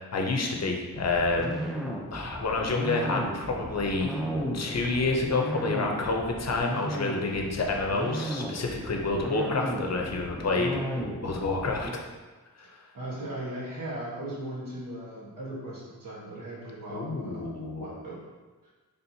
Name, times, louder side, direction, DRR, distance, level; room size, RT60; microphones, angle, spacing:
voice 1, 0.1-1.7 2.1-4.2 4.5-11.9 12.6-12.7 16.9-17.9, left 3 dB, 50° left, 1 dB, 0.6 m, -29 dB
sound 1, 0.9-11.9, equal, ahead, 0.5 m, -34 dB
voice 2, 12.9-17.5 17.8-18.1 18.6-18.7, right 1 dB, 85° right, -7 dB, 1.3 m, -38 dB
4.2 x 3.4 x 2.7 m, 1.3 s
wide cardioid pair, 110°, 33 cm